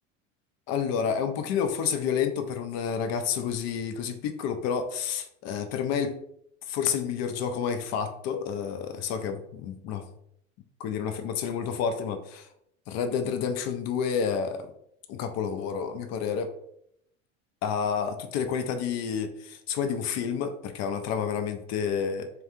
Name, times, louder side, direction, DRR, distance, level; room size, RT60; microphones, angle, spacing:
voice 1, 0.7-6.2 6.7-10.1 10.8-12.5 12.9-14.7 15.1-16.5 17.6-22.3, left 7 dB, 45° left, 8 dB, 0.5 m, -29 dB
3.3 x 2.2 x 2.7 m, 0.74 s
hypercardioid pair, 80°, 39 cm